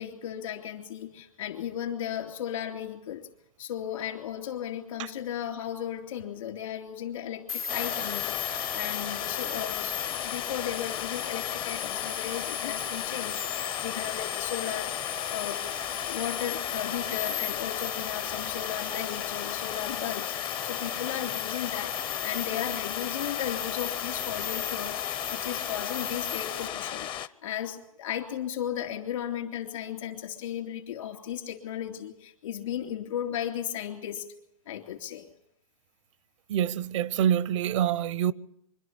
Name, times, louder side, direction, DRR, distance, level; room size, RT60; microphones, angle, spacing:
voice 1, 0.0-3.3 3.6-15.6 16.1-34.3 34.7-35.3, left 10 dB, 70° left, 3.5 m, -35 dB
sound 1, 7.5-26.7, left 7 dB, 85° left, 1.3 m, -37 dB
sound 2, 7.7-27.3, left 11 dB, 30° left, 0.7 m, -35 dB
voice 2, 36.5-38.3, right 10 dB, 60° right, 0.8 m, -26 dB
25.5 x 12.5 x 9.8 m
hypercardioid pair, 110°, 18 cm